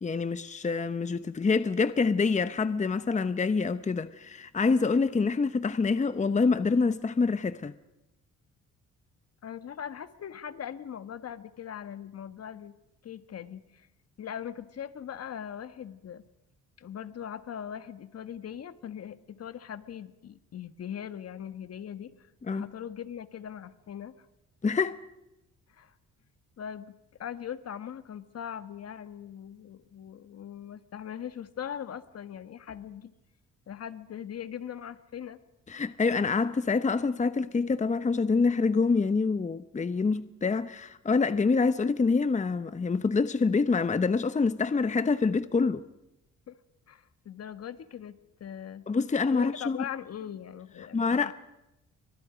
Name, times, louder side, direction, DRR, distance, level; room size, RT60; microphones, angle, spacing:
voice 1, 0.0-7.7 22.5-22.6 24.6-25.0 35.7-45.8 48.9-49.8 50.9-51.3, left 4 dB, 25° left, 0.9 m, -26 dB
voice 2, 9.4-12.8 13.0-13.9 14.2-16.2 16.8-24.3 25.7-25.9 26.6-33.1 33.7-35.4 46.5-46.6 46.9-48.8 49.3-51.3, left 9 dB, 55° left, 1.5 m, -40 dB
29.5 x 24.5 x 5.1 m
cardioid pair, 90°, 30 cm